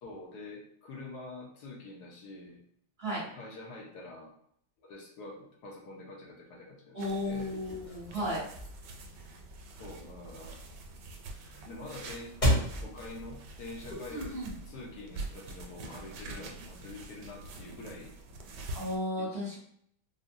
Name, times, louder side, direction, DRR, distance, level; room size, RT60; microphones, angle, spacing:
voice 1, 0.0-2.6 3.3-4.3 4.8-7.5 9.7-10.6 11.7-14.3 14.7-18.1 19.2-19.4, left 2 dB, 75° left, 0 dB, 1.2 m, -46 dB
voice 2, 6.9-8.4 14.1-14.5 18.7-19.6, equal, 40° right, -7 dB, 1.1 m, -34 dB
sound 1, 7.0-19.0, right 2 dB, 85° right, 1.2 m, -46 dB
sound 2, 7.4-14.4, equal, 30° left, 0.9 m, -35 dB
3.7 x 2.0 x 2.5 m, 0.67 s
omnidirectional pair, 1.8 m